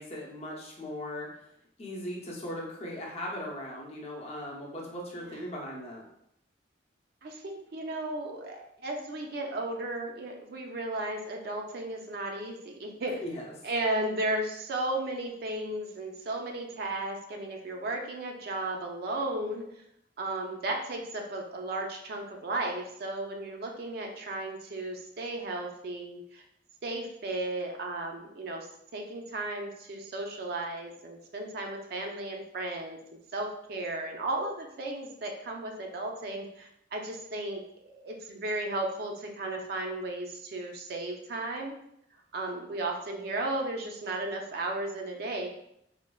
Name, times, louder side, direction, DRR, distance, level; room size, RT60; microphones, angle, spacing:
voice 1, 0.0-1.5 1.8-6.0 13.2-13.5, left 1 dB, 35° left, -3 dB, 0.6 m, -38 dB
voice 2, 7.2-13.2 13.6-19.7 20.2-26.4 26.8-41.8 42.3-45.5, right 2 dB, 55° right, 2 dB, 0.4 m, -35 dB
3.2 x 2.1 x 2.2 m, 0.76 s
head